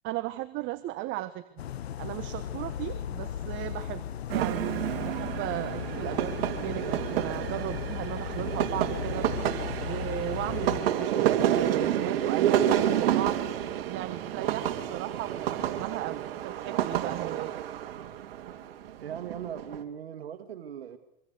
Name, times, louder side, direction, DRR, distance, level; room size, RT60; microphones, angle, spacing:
voice 1, 0.0-1.4 2.0-9.3 9.8-13.4 13.9-17.5, right 15 dB, 40° right, 12 dB, 1.2 m, -36 dB
sound 1, 1.6-10.8, left 9 dB, 85° left, 1.4 m, -36 dB
sound 2, 4.3-19.8, right 11 dB, 65° right, 2.7 m, -29 dB
voice 2, 18.9-21.0, right 9 dB, 85° right, 7 dB, 2.0 m, -39 dB
26.0 x 24.5 x 8.2 m, 0.86 s
hypercardioid pair, 125°, 31 cm